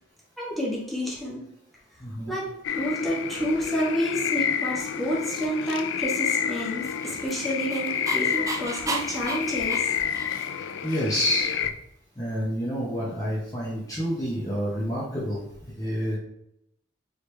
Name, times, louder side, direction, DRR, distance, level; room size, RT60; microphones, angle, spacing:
voice 1, 0.4-1.4 2.3-9.9, equal, ahead, -6 dB, 1.4 m, -29 dB
voice 2, 2.0-2.3 10.8-11.5 12.2-16.2, equal, 20° left, -7 dB, 1.0 m, -28 dB
sound 1, 2.6-11.7, left 8 dB, 85° left, 0.3 m, -29 dB
Dog, 6.8-10.7, right 3 dB, 20° right, 0.5 m, -34 dB
4.9 x 3.3 x 3.2 m, 0.78 s
head